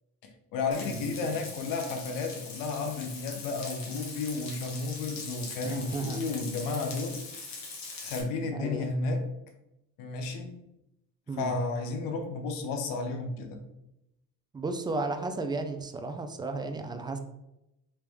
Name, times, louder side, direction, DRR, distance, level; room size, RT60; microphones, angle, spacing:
voice 1, 0.2-7.2 8.0-9.2 10.0-10.6 11.4-13.6, left 3 dB, 80° left, 5 dB, 0.8 m, -32 dB
Frying (food), 0.7-8.2, left 4 dB, 55° left, 1.1 m, -42 dB
voice 2, 0.9-1.3 5.6-6.2 8.5-8.9 11.3-11.6 14.5-17.2, right 3 dB, 15° right, 6 dB, 0.3 m, -34 dB
3.2 x 3.0 x 3.4 m, 0.87 s
cardioid pair, 110°, 33 cm